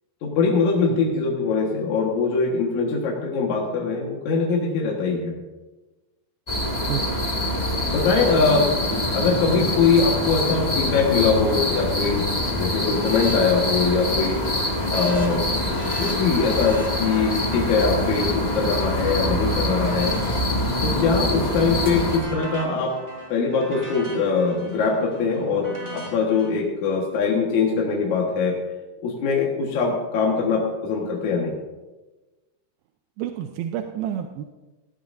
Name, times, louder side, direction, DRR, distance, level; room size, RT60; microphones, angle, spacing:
voice 1, 0.2-5.3 7.9-8.7 9.1-14.4 14.9-20.1 20.8-22.9 23.3-28.6 29.0-31.6, left 4 dB, 55° left, -3 dB, 2.6 m, -22 dB
sound 1, 6.5-22.2, left 1 dB, 30° left, 0.7 m, -25 dB
voice 2, 6.9-7.5 33.2-34.4, right 10 dB, 80° right, 5 dB, 2.5 m, -30 dB
sound 2, 12.9-13.3 13.6-14.1 14.4-19.2 19.7-21.0 21.4-26.5, right 1 dB, 15° right, 3.2 m, -41 dB
18.0 x 16.5 x 2.7 m, 1.2 s
omnidirectional pair, 4.5 m